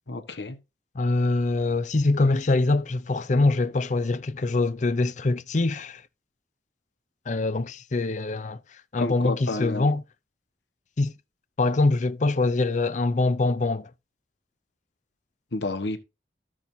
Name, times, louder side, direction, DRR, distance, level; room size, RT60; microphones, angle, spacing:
voice 1, 0.1-0.6 9.0-9.9 15.5-16.0, left 2 dB, 80° left, 1.3 m, -30 dB
voice 2, 1.0-6.0 7.3-8.6 8.9-10.0 11.0-11.1 11.6-13.9, left 2 dB, 45° left, 0.5 m, -24 dB
14.0 x 6.2 x 2.7 m
head